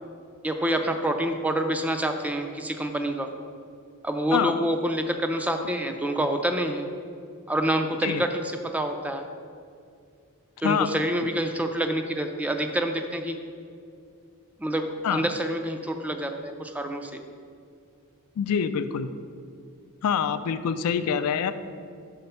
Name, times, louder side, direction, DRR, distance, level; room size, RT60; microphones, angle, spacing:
voice 1, 0.4-3.3 4.0-6.9 7.5-9.2 10.6-13.4 14.6-17.2, right 1 dB, 5° right, 5 dB, 0.3 m, -27 dB
voice 2, 18.4-19.1 20.0-21.5, left 7 dB, 70° left, 11 dB, 0.3 m, -25 dB
5.7 x 4.1 x 5.4 m, 2.3 s
head